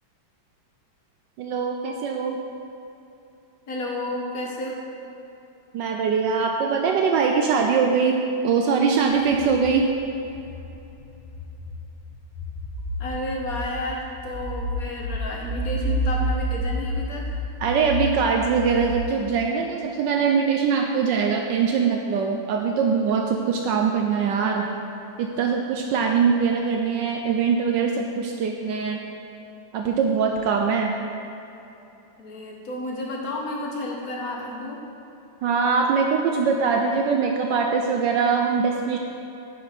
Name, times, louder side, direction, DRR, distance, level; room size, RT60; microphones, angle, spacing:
voice 1, 1.4-2.4 5.7-9.9 17.6-24.7 25.2-29.0 29.7-30.9 35.4-39.0, right 5 dB, 75° right, 2 dB, 1.2 m, -22 dB
voice 2, 3.7-4.8 13.0-17.5 32.2-34.8, left 1 dB, 50° left, -1 dB, 1.4 m, -31 dB
sound 1, 9.2-19.0, equal, 40° right, 2.6 m, -30 dB
9.5 x 5.8 x 5.1 m, 2.9 s
omnidirectional pair, 2.2 m